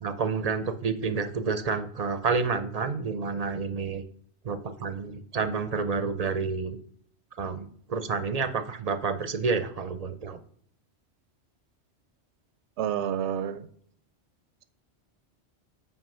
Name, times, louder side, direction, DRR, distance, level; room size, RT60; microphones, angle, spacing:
voice 1, 0.0-4.0 4.4-6.8 7.4-10.4, right 5 dB, 45° right, 10 dB, 0.5 m, -29 dB
voice 2, 12.8-13.7, right 9 dB, 80° right, 13 dB, 0.9 m, -29 dB
6.1 x 4.8 x 5.5 m, 0.62 s
omnidirectional pair, 1.1 m